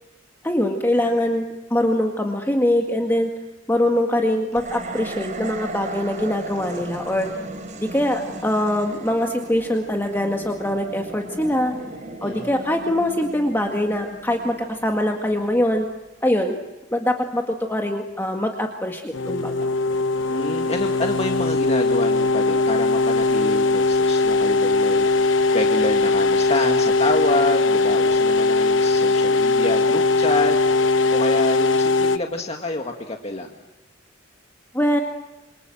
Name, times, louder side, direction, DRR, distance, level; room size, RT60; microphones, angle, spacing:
voice 1, 0.4-3.3 3.7-7.3 7.8-11.7 12.2-15.9 16.2-16.6 16.9-19.7 34.7-35.0, left 1 dB, 10° left, 3 dB, 1.9 m, -23 dB
sound 1, 4.5-15.9, right 2 dB, 40° right, 3.9 m, -37 dB
sound 2, 19.1-32.2, left 3 dB, 75° left, 1.0 m, -20 dB
voice 2, 20.3-33.5, left 2 dB, 35° left, 3 dB, 1.9 m, -28 dB
28.0 x 27.5 x 7.8 m, 1.0 s
head